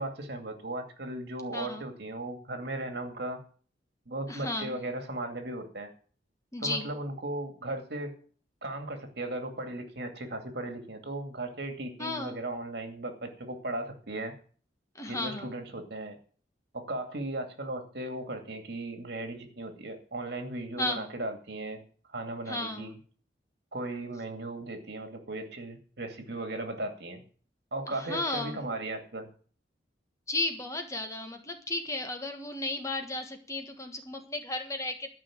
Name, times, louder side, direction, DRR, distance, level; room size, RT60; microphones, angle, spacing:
voice 1, 0.0-3.4 4.1-5.9 6.6-8.1 8.6-14.3 15.1-16.2 16.7-21.8 22.1-22.9 23.7-27.2 27.7-29.3, right 2 dB, 65° right, 5 dB, 2.4 m, -37 dB
voice 2, 1.5-1.8 4.3-4.8 6.5-6.9 12.0-12.4 14.9-15.5 20.8-21.1 22.5-22.9 27.9-28.6 30.3-35.1, left 2 dB, 20° left, 5 dB, 1.4 m, -34 dB
12.5 x 5.7 x 8.8 m, 0.43 s
head